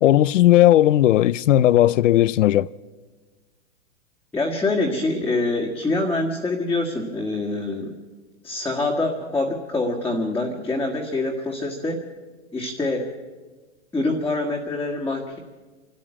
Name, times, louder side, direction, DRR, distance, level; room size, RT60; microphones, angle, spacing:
voice 1, 0.0-2.7, left 13 dB, 80° left, 0.7 m, -16 dB
voice 2, 4.3-8.0 8.4-12.0 12.5-13.1 13.9-15.4, left 2 dB, 5° left, 1.6 m, -25 dB
25.5 x 12.5 x 8.8 m
hypercardioid pair, 145°, 37 cm